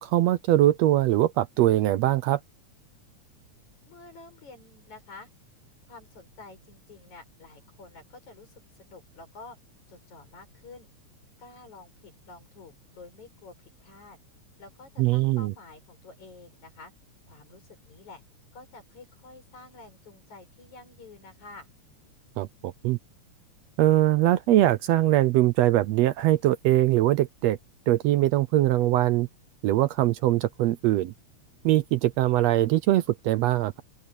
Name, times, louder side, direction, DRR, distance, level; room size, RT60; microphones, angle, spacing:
voice 1, 0.0-2.4 15.0-15.5 22.4-23.0 23.8-27.6 27.9-29.3 29.6-31.1 31.6-33.8, right 14 dB, 75° right, 1.7 m, -22 dB
voice 2, 3.9-5.3 5.9-9.6 9.9-10.9 11.4-14.2 14.6-16.9 17.3-18.2 18.5-21.7, left 3 dB, 75° left, 8.2 m, -49 dB
open air
omnidirectional pair, 3.4 m